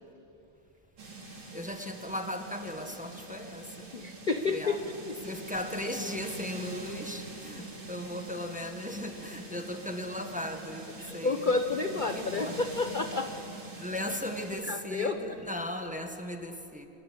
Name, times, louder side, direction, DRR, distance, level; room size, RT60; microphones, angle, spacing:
sound 1, 1.0-14.6, right 3 dB, 70° right, 4.5 m, -44 dB
voice 1, 1.5-3.9 4.5-4.8 5.2-11.4 12.1-12.6 13.8-16.9, left 1 dB, 5° right, 5 dB, 1.4 m, -37 dB
voice 2, 3.9-5.1 11.0-13.3 14.7-15.2, left 3 dB, 40° left, 6 dB, 0.7 m, -30 dB
26.5 x 22.0 x 8.7 m, 2.8 s
omnidirectional pair, 2.3 m